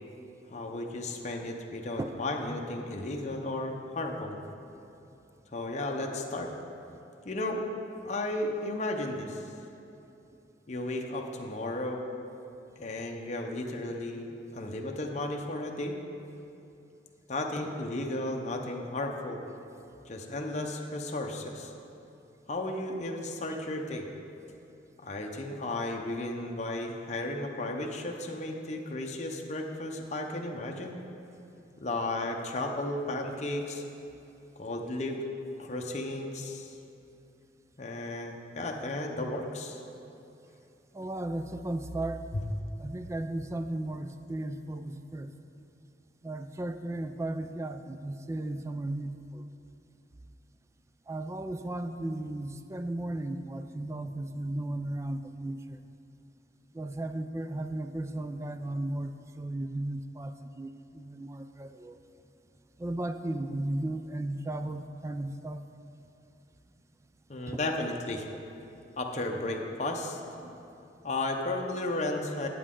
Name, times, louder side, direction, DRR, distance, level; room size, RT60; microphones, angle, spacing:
voice 1, 0.5-4.4 5.5-6.5 7.2-7.6 8.0-9.4 10.7-12.1 12.8-16.0 17.3-19.4 20.1-21.7 22.5-24.1 25.0-31.0 31.8-33.8 34.6-35.2 35.6-36.7 37.8-39.8 42.3-42.4 67.3-68.3 69.0-70.2 71.0-72.5, left 2 dB, 40° left, 2 dB, 0.7 m, -34 dB
voice 2, 40.9-42.2 42.8-45.3 46.2-49.4 51.1-55.8 56.7-62.0 62.8-65.6 67.5-67.6 70.4-70.5, right 1 dB, 15° right, 9 dB, 0.3 m, -35 dB
10.5 x 8.5 x 3.7 m, 2.8 s
head